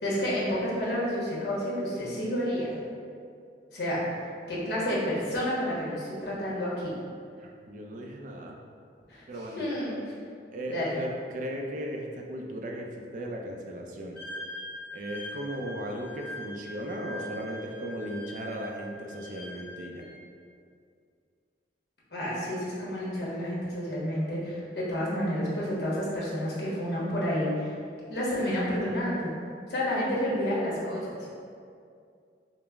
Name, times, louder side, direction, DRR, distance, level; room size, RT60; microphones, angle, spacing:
voice 1, 0.0-2.8 3.7-6.9 9.1-9.2 9.6-9.9 10.7-11.0 22.1-27.7 28.1-29.4 29.7-31.3, equal, 65° left, -7 dB, 1.1 m, -30 dB
voice 2, 7.4-8.6 9.3-9.6 10.5-14.2 14.9-20.1, equal, 45° right, 0 dB, 0.4 m, -36 dB
Wind instrument woodwind instrument, 14.2-20.1, left 1 dB, 5° left, 1.0 m, -43 dB
5.0 x 2.0 x 3.4 m, 2.3 s
head